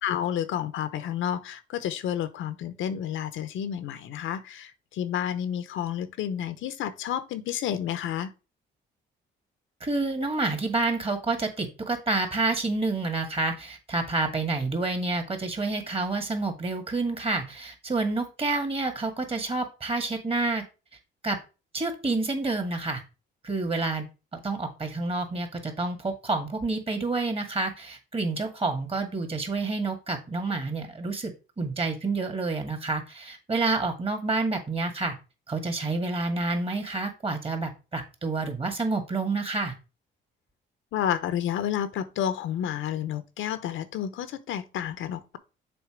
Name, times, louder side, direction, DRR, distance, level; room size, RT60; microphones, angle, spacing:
voice 1, 0.0-8.3 40.9-45.4, left 10 dB, 80° left, 0.8 m, -30 dB
voice 2, 9.8-20.6 21.2-21.4 21.7-23.0 23.4-24.0 24.3-31.3 31.6-35.1 35.5-39.7, right 3 dB, 30° right, 2.1 m, -28 dB
7.0 x 3.9 x 5.1 m
cardioid pair, 90°, 20 cm